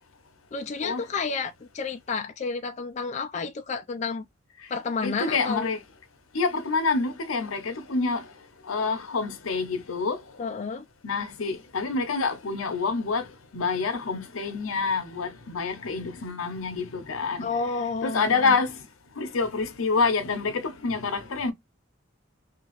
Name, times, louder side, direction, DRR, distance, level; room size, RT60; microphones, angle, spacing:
voice 1, 0.5-4.3 4.7-5.7 10.4-10.9 17.4-18.6, left 4 dB, 35° left, 0.3 m, -31 dB
voice 2, 5.0-5.8 6.3-8.3 8.6-10.2 11.0-17.5 18.0-18.8 19.2-21.5, left 4 dB, 90° left, 0.7 m, -27 dB
2.8 x 2.4 x 3.0 m
head